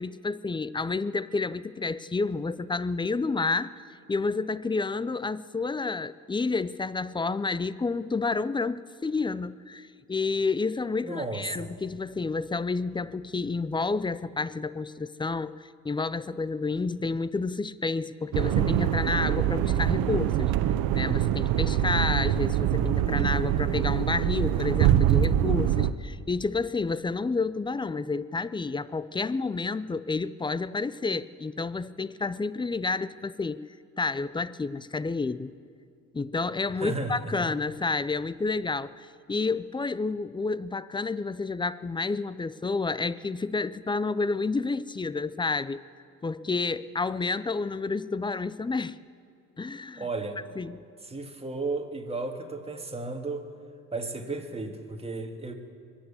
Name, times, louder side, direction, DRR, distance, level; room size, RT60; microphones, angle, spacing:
voice 1, 0.0-3.7 4.1-20.5 20.9-35.5 36.1-45.8 46.2-49.0 49.6-50.0 50.6-50.8, left 3 dB, 15° left, 17 dB, 0.4 m, -30 dB
voice 2, 11.0-11.7 36.8-37.4 50.0-50.4 51.0-53.5 53.9-55.5, right 3 dB, 15° right, 3 dB, 1.9 m, -34 dB
sound 1, 18.3-25.9, right 11 dB, 80° right, 0.7 m, -24 dB
22.5 x 8.9 x 6.9 m, 2.3 s
supercardioid pair, 75°, 35 cm